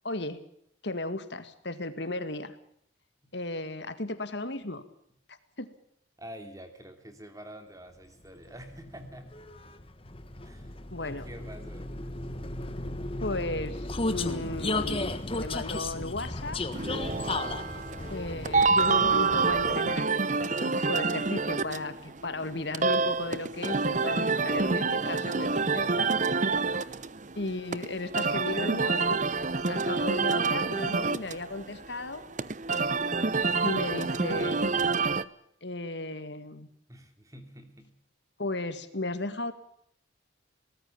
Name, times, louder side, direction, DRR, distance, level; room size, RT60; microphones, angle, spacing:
voice 1, 0.0-0.4 0.8-2.6 3.3-4.8 5.6-5.7 10.9-11.3 13.2-16.6 18.1-20.1 20.6-26.1 27.4-29.2 29.7-32.2 33.6-34.7 35.6-36.7 38.4-39.5, left 2 dB, 60° left, 11 dB, 2.0 m, -35 dB
voice 2, 6.2-9.3 10.4-11.9 26.6-27.0 36.9-37.9, equal, 15° right, 7 dB, 3.1 m, -47 dB
Vehicle, 8.2-20.1, left 2 dB, 30° left, 1.5 m, -35 dB
sound 1, 16.7-35.2, right 4 dB, 40° right, 0.8 m, -27 dB
23.0 x 19.0 x 7.2 m, 0.71 s
head